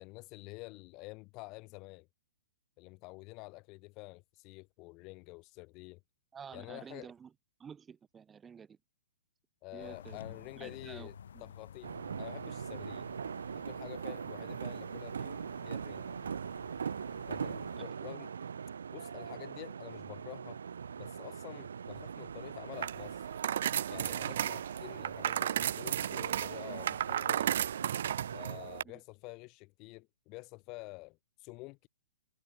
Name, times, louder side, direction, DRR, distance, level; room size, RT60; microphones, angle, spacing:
voice 1, 0.0-2.1 2.8-6.0 6.5-7.1 9.6-11.9 12.2-13.1 13.5-16.1 17.3-18.3 18.9-20.6 21.0-23.3 23.9-27.6 28.3-31.9, left 25 dB, 30° left, 0.9 m, -48 dB
voice 2, 6.3-7.3 7.6-8.8 9.7-11.5 17.8-17.9 28.8-29.0, right 7 dB, 10° right, 1.7 m, -50 dB
sound 1, 9.8-17.8, left 8 dB, 70° left, 5.0 m, -52 dB
sound 2, 11.8-28.6, right 6 dB, 85° right, 2.4 m, -41 dB
sound 3, 22.7-28.8, right 10 dB, 55° right, 0.6 m, -34 dB
hypercardioid pair, 155°, 0 cm